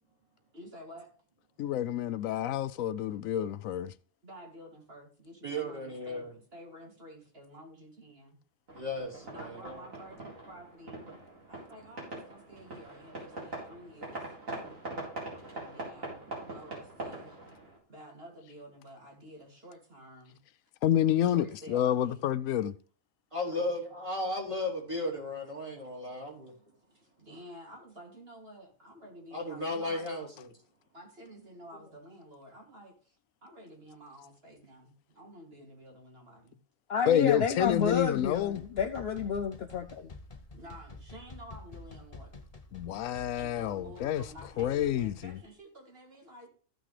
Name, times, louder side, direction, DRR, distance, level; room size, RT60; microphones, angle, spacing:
voice 1, 0.5-1.1 4.2-8.4 9.2-10.2 10.4-11.2 11.5-14.2 15.5-17.4 17.9-20.4 21.1-22.3 23.4-23.8 26.9-30.0 30.9-36.6 40.5-42.3 43.3-46.5, equal, 50° right, 2.9 m, -51 dB
voice 2, 1.6-3.9 20.8-22.7 37.1-38.6 42.7-44.2 44.6-45.4, left 11 dB, 90° left, 1.0 m, -28 dB
voice 3, 5.4-6.3 8.7-9.8 23.3-26.5 29.3-30.5, left 1 dB, 25° right, 3.2 m, -35 dB
sound 1, 8.7-17.8, right 2 dB, 90° right, 4.3 m, -43 dB
voice 4, 36.9-40.1, left 6 dB, 60° left, 0.8 m, -30 dB
sound 2, 37.4-45.4, left 3 dB, 30° left, 0.9 m, -50 dB
14.5 x 6.3 x 3.3 m
omnidirectional pair, 1.3 m